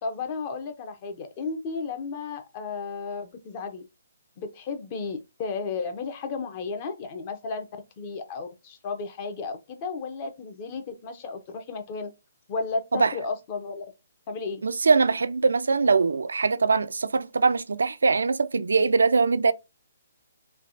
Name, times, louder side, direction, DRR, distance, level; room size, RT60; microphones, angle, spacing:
voice 1, 0.0-3.9 4.4-7.7 8.0-12.1 12.5-13.8 14.3-14.6, left 4 dB, 35° left, 0.7 m, -33 dB
voice 2, 14.6-19.5, right 4 dB, 80° right, 0.3 m, -22 dB
3.3 x 2.4 x 2.6 m
hypercardioid pair, 150°, 0 cm